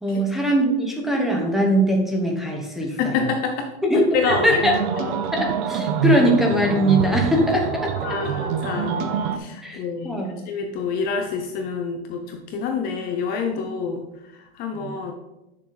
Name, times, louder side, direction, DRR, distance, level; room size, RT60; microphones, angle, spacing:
voice 1, 0.0-3.2 3.8-4.7 5.3-7.9 9.6-10.4 14.7-14.9, equal, ahead, -2 dB, 1.1 m, -21 dB
voice 2, 3.0-3.7 4.1-4.6 5.0-5.1 8.0-14.0 14.5-15.1, left 5 dB, 30° left, 4 dB, 0.8 m, -27 dB
sound 1, 4.3-9.4, right 7 dB, 40° right, 0.8 m, -25 dB
10.0 x 6.6 x 4.0 m, 0.97 s
supercardioid pair, 165°, 31 cm